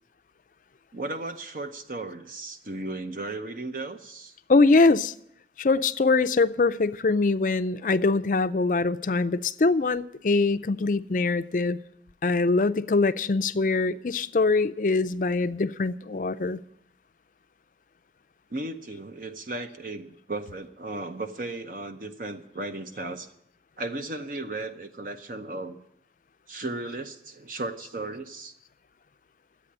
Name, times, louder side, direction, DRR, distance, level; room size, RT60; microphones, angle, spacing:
voice 1, 0.9-4.3 18.5-23.3 23.8-25.8 26.5-28.5, right 2 dB, 50° right, 0.8 m, -35 dB
voice 2, 4.5-5.1 5.6-11.8 12.2-16.6, left 3 dB, 45° left, 0.4 m, -23 dB
12.0 x 8.5 x 10.0 m
head